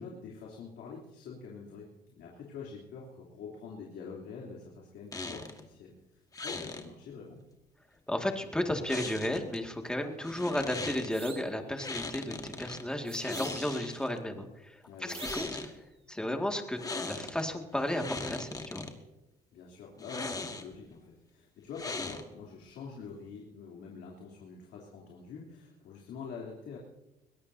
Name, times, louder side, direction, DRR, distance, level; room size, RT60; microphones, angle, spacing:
voice 1, 0.0-1.9 2.1-7.4 14.8-15.3 19.5-26.8, left 5 dB, 75° left, -3 dB, 3.3 m, -46 dB
sound 1, 5.1-5.6 6.3-6.8 8.9-9.6 10.2-11.1 11.8-12.8 13.2-14.2 15.0-15.7 16.8-17.4 17.8-18.9 20.0-20.8 21.7-22.5, left 3 dB, 20° left, 1.7 m, -39 dB
voice 2, 8.1-15.5 16.1-16.8 17.0-18.9, left 1 dB, 5° left, 4 dB, 2.1 m, -33 dB
sound 2, 11.1-11.6 13.1-13.9 15.1-15.7, right 5 dB, 35° right, 1.8 m, -46 dB
22.5 x 17.5 x 2.8 m, 0.99 s
cardioid pair, 110°, 17 cm